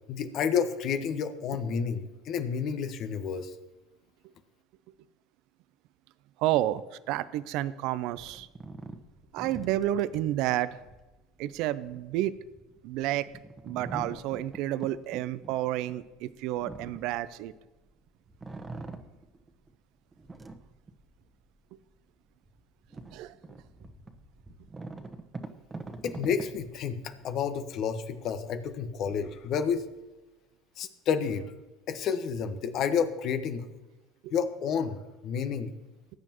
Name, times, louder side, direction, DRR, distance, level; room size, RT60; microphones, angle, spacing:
voice 1, 0.1-3.5 26.0-29.8 30.8-31.5 31.9-33.7 34.3-35.0 35.2-35.7, left 7 dB, 55° left, 9 dB, 1.2 m, -30 dB
voice 2, 6.4-6.8 7.1-8.5 9.3-10.7 11.4-12.3 12.8-13.3 13.6-17.5 23.1-23.3 34.2-34.3, right 14 dB, 65° right, 16 dB, 0.5 m, -30 dB
sound 1, 8.1-17.9 18.3-19.7 20.1-21.4 21.9-22.0 22.5-27.6, right 3 dB, 20° right, 1.3 m, -45 dB
19.5 x 9.0 x 3.0 m, 1.1 s
hypercardioid pair, 70°, 0 cm